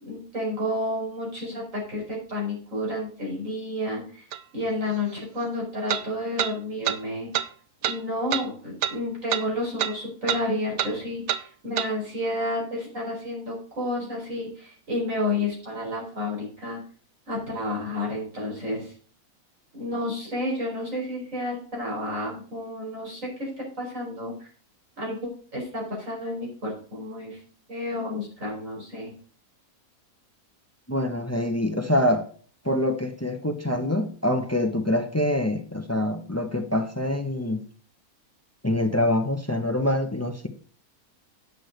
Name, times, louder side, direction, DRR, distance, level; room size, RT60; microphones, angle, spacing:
voice 1, 0.0-4.2 4.5-7.3 7.9-16.8 17.3-18.9 19.7-23.5 23.8-24.3 25.0-25.2 25.5-27.4 27.7-29.1, left 1 dB, 55° right, -4 dB, 5.5 m, -30 dB
sound 1, 4.3-4.4 5.9-6.0 6.4-6.5 6.8-7.0 7.3-7.5 7.8-8.0 8.3-8.4 8.8-9.0 9.3-9.5 9.8-9.9 10.3-10.4 10.8-10.9 11.3-11.4 11.8-11.9, right 10 dB, 80° right, 1.2 m, -26 dB
voice 2, 30.9-32.3 32.6-37.6 38.6-40.5, left 1 dB, 15° left, 6 dB, 0.8 m, -25 dB
9.5 x 6.2 x 6.5 m, 0.44 s
omnidirectional pair, 1.6 m